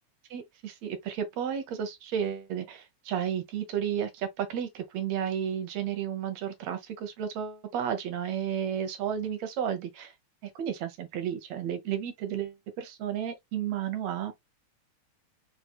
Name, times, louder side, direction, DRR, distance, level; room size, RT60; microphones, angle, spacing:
voice 1, 0.3-10.1 10.4-14.3, right 9 dB, 70° right, 2.1 m, -32 dB
4.8 x 4.3 x 2.3 m
omnidirectional pair, 3.5 m